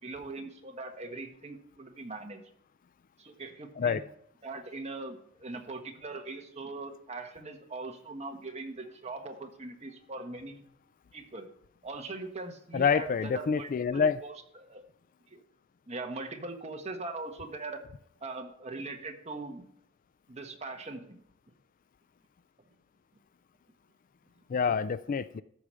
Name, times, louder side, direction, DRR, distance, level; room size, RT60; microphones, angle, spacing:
voice 1, 0.0-2.4 3.2-4.0 4.4-10.6 11.1-11.5 11.8-14.8 15.3-15.4 15.9-17.8 18.2-19.6 20.3-21.2, right 3 dB, 30° right, 4 dB, 1.5 m, -41 dB
voice 2, 12.7-14.2 24.5-25.4, left 6 dB, 40° left, 16 dB, 0.4 m, -27 dB
13.5 x 4.9 x 7.5 m, 0.72 s
head